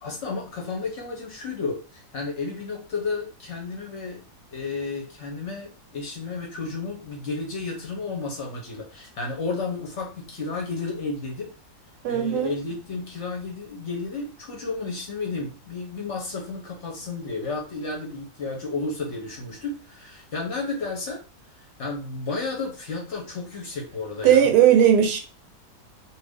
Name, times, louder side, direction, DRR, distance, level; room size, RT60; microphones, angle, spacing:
voice 1, 0.0-4.2 4.5-11.5 12.1-21.2 21.6-24.5, left 3 dB, 55° left, 0.9 m, -32 dB
voice 2, 12.0-12.5 24.2-25.2, right 9 dB, 80° right, 1.3 m, -17 dB
2.6 x 2.4 x 3.4 m
omnidirectional pair, 1.7 m